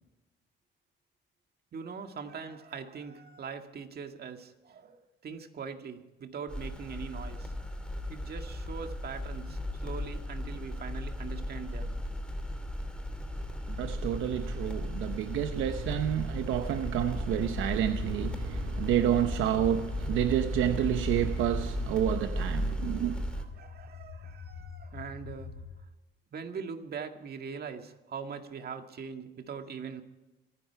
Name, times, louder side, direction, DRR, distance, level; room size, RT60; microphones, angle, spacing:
voice 1, 1.7-7.5 8.1-11.9 18.7-18.8 23.3-25.6 26.3-30.0, right 6 dB, 50° right, 2.0 m, -42 dB
sound 1, 6.5-23.4, left 1 dB, 5° left, 2.6 m, -35 dB
voice 2, 13.7-23.2, right 11 dB, 85° right, 0.9 m, -29 dB
sound 2, 17.9-25.8, left 7 dB, 80° left, 2.4 m, -48 dB
26.0 x 10.5 x 4.7 m
cardioid pair, 90°, 20 cm